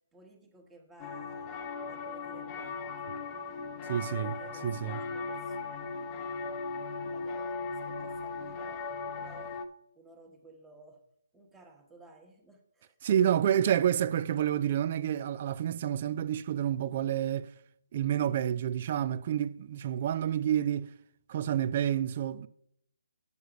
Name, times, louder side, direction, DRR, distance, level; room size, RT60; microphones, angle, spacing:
voice 1, 0.1-3.5 4.2-6.6 6.9-9.6 9.9-11.0 11.3-13.6, right 2 dB, 10° right, 1.3 m, -57 dB
sound 1, 1.0-9.7, left 4 dB, 20° left, 0.7 m, -38 dB
voice 2, 3.9-5.0 13.0-17.5 17.9-20.9 21.3-22.5, right 10 dB, 40° right, 0.4 m, -29 dB
8.2 x 6.9 x 5.0 m
hypercardioid pair, 155°, 0 cm